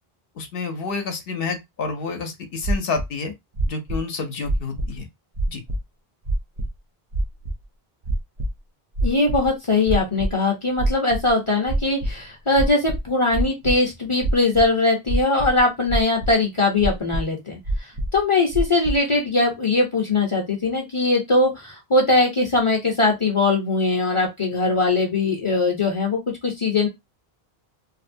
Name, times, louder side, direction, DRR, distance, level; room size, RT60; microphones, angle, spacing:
voice 1, 0.4-3.3 3.7-5.1 5.5-5.6, left 4 dB, 70° left, 0.8 m, -29 dB
sound 1, 2.6-3.1 3.5-4.0 4.4-5.0 5.4-5.8 6.3-6.7 7.1-7.5 8.0-8.5 8.9-9.5 9.8-10.3 10.8-11.3 11.7-12.1 12.5-13.7 14.2-14.6 15.1-15.6 15.9-16.3 16.8-17.2 17.6-18.2 18.5-18.9, right 1 dB, 50° right, 0.5 m, -24 dB
voice 2, 9.0-17.6 18.1-26.9, left 3 dB, 35° left, 0.6 m, -21 dB
2.7 x 2.1 x 2.5 m
omnidirectional pair, 1.0 m